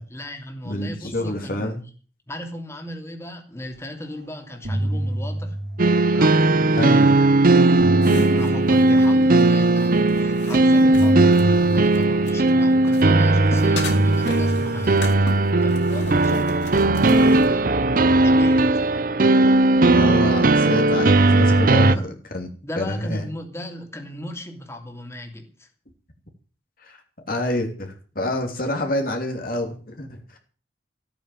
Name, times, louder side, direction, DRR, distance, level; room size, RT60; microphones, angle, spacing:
voice 1, 0.0-1.8 2.3-5.6 6.1-7.1 8.3-15.3 15.6-17.7 18.2-18.9 21.8-22.0 22.6-25.7, left 1 dB, 15° left, 3 dB, 2.8 m, -36 dB
voice 2, 0.6-1.8 6.8-7.2 19.8-22.5 22.8-23.3 26.8-27.0 27.3-30.4, left 1 dB, 55° left, 2 dB, 3.0 m, -27 dB
sound 1, 4.0-4.2 4.5-6.8 7.5-9.9 10.9-13.4 13.9-16.4, right 1 dB, 80° right, 3.7 m, -29 dB
sound 2, 5.8-22.0, right 2 dB, 50° right, 0.8 m, -17 dB
sound 3, 8.0-12.5 12.8-17.5, left 2 dB, 80° left, 3.9 m, -35 dB
14.5 x 9.2 x 7.8 m, 0.40 s
head